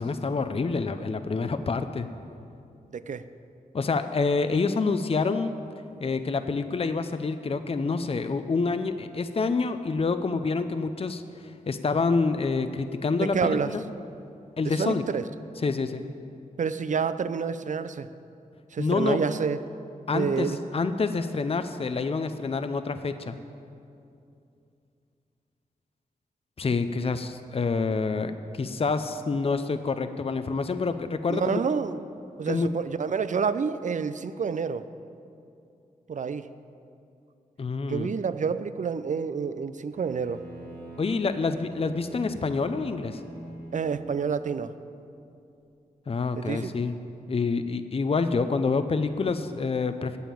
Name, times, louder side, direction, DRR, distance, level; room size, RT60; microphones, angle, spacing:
voice 1, 0.0-2.1 3.7-5.5 6.0-11.2 11.7-13.8 14.6-15.0 15.6-16.0 18.8-19.2 20.1-23.4 26.6-31.6 32.5-32.7 37.6-38.1 41.0-43.2 46.1-46.9 47.3-50.2, left 4 dB, 40° left, 10 dB, 0.6 m, -27 dB
voice 2, 2.9-3.2 13.2-13.7 14.6-15.2 16.6-18.1 18.7-19.6 20.1-20.6 31.3-32.0 32.4-34.8 36.1-36.5 37.9-40.5 43.7-44.7 46.4-46.7, right 6 dB, 55° right, 13 dB, 0.5 m, -28 dB
Bowed string instrument, 39.9-44.4, right 1 dB, 85° right, 1.9 m, -43 dB
9.2 x 7.1 x 8.5 m, 2.6 s
cardioid pair, 50°, 15 cm